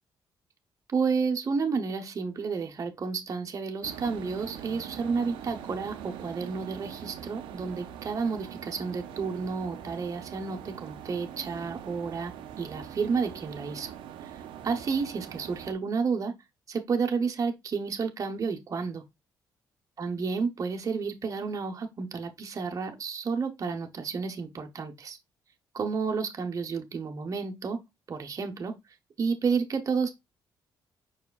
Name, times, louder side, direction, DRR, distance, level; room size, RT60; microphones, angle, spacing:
voice 1, 0.9-12.3 12.6-13.9 14.2-14.3 14.6-16.3 16.7-19.0 20.0-25.2 25.7-27.8 28.1-28.7 29.2-30.1, right 5 dB, 40° right, 0.8 m, -31 dB
sound 1, 3.8-15.7, right 9 dB, 90° right, 0.6 m, -43 dB
5.0 x 4.7 x 2.2 m
cardioid pair, 80°, 8 cm